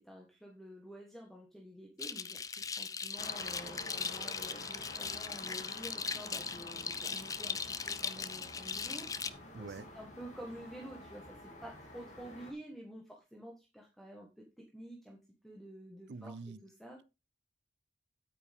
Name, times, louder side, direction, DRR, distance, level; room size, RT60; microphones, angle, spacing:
voice 1, 0.1-2.4 2.8-7.6 7.8-9.1 9.6-11.2 11.6-13.0 13.3-14.3 14.7-15.2 15.4-16.3 16.6-17.0, equal, ahead, 1.5 m, -49 dB
sound 1, 2.0-9.3, left 5 dB, 20° left, 0.4 m, -39 dB
sound 2, 3.2-12.5, left 1 dB, 40° left, 2.9 m, -49 dB
voice 2, 9.5-9.9 16.1-16.6, right 4 dB, 65° right, 0.5 m, -45 dB
9.1 x 8.8 x 3.6 m
head